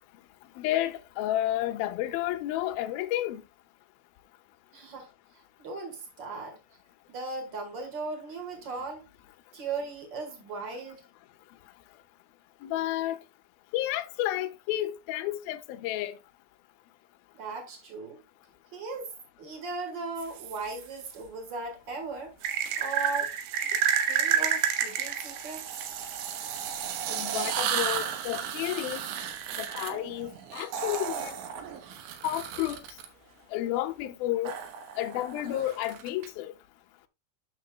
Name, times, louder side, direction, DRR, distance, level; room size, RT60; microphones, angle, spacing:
voice 1, 0.6-3.4 12.6-13.2 13.7-16.2 27.1-29.0 29.6-31.4 32.2-32.8 33.5-34.5 35.0-36.5, left 14 dB, 80° left, 2.1 m, -31 dB
voice 2, 4.7-5.1 5.6-6.6 7.1-9.0 9.5-11.0 17.3-18.2 18.7-19.1 19.4-22.3 22.8-23.3 23.7-25.9, right 3 dB, 65° right, 1.1 m, -37 dB
sound 1, 20.2-21.1 22.4-33.1 34.5-36.3, right 8 dB, 90° right, 3.4 m, -31 dB
10.5 x 6.4 x 2.3 m
omnidirectional pair, 5.2 m